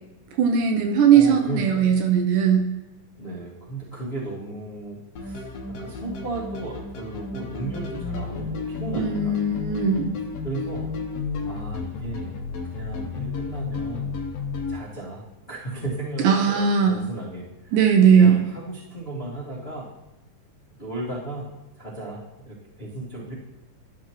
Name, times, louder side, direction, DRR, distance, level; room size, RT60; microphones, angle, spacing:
voice 1, 0.4-2.7 9.0-10.1 16.2-17.0 17.7-18.4, right 7 dB, 75° right, 3 dB, 2.1 m, -18 dB
voice 2, 1.1-2.0 3.2-5.5 5.8-9.4 10.4-10.9 11.5-12.4 12.7-14.1 14.7-17.8 18.1-19.9 20.8-21.5 21.8-23.3, right 2 dB, 40° left, -8 dB, 0.9 m, -35 dB
sound 1, 5.2-14.8, left 4 dB, 75° left, 1.5 m, -32 dB
12.0 x 6.1 x 3.0 m, 1.0 s
omnidirectional pair, 4.2 m